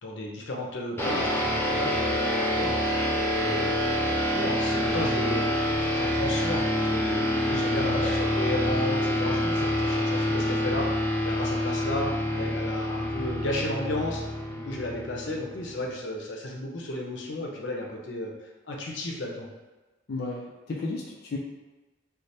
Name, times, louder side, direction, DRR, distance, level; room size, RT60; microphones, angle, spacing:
voice 1, 0.0-3.0 3.3-18.3 18.6-19.5, left 1 dB, 90° left, -1 dB, 0.7 m, -34 dB
sound 1, 1.0-15.8, left 1 dB, 10° left, 0.6 m, -27 dB
voice 2, 7.7-8.1 20.1-21.4, left 3 dB, 55° left, -3 dB, 0.4 m, -34 dB
3.3 x 2.1 x 4.1 m, 1.2 s
head